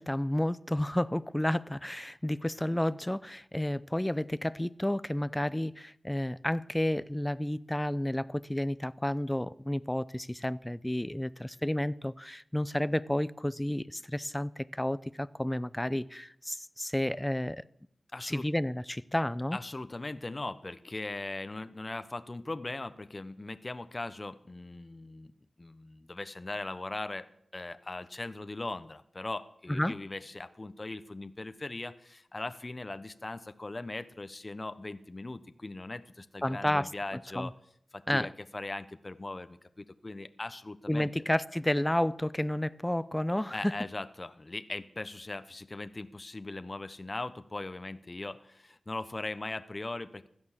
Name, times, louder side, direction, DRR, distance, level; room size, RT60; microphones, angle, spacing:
voice 1, 0.0-17.6 18.2-19.6 29.7-30.0 36.4-36.9 37.3-37.5 38.1-38.3 40.9-43.7, left 1 dB, 15° left, 0.6 m, -31 dB
voice 2, 18.1-18.5 19.5-25.3 25.6-37.5 37.9-41.1 43.5-50.3, left 2 dB, 40° left, 1.0 m, -39 dB
16.5 x 12.0 x 7.3 m
cardioid pair, 45°, 0 cm